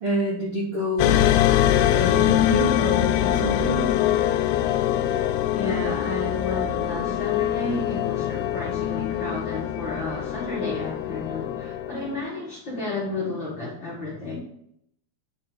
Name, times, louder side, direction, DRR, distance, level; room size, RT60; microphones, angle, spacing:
voice 1, 0.0-1.2 1.9-3.9, equal, 55° right, -6 dB, 1.6 m, -27 dB
sound 1, 1.0-12.3, left 12 dB, 85° left, 2.6 m, -23 dB
voice 2, 5.5-14.4, left 2 dB, 40° left, -6 dB, 1.9 m, -32 dB
9.8 x 4.3 x 5.3 m, 0.72 s
omnidirectional pair, 4.6 m